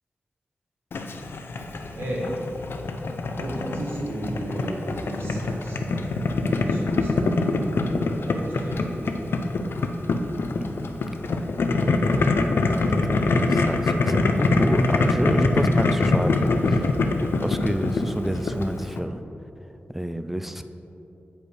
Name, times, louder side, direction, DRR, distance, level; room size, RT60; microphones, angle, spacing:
Boiling, 0.9-19.0, left 3 dB, 75° left, 0.5 m, -24 dB
voice 1, 1.9-2.3 3.3-7.8 8.2-8.9, right 1 dB, 85° right, -4 dB, 1.7 m, -34 dB
voice 2, 10.6-11.5 11.8-12.2 12.6-16.8 17.4-19.2 19.9-20.6, equal, 5° right, 8 dB, 0.3 m, -29 dB
8.2 x 5.2 x 4.7 m, 3.0 s
wide cardioid pair, 130°, 4 cm